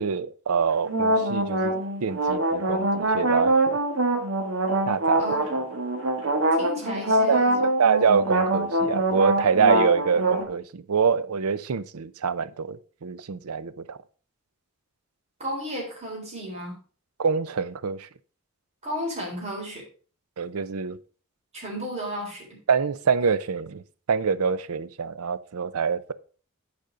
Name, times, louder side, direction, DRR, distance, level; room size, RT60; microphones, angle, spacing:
voice 1, 0.0-1.8 2.0-3.8 4.9-5.2 7.3-7.4 7.8-14.0 17.2-18.1 20.4-21.0 22.7-23.8 24.1-26.1, right 6 dB, 85° right, 15 dB, 0.6 m, -25 dB
sound 1, 0.9-10.4, right 1 dB, 70° right, 1.4 m, -24 dB
voice 2, 5.2-5.6 6.5-7.7 15.4-16.8 18.8-19.8 21.5-22.6, equal, 30° right, -2 dB, 3.6 m, -33 dB
9.3 x 5.1 x 5.0 m, 0.40 s
head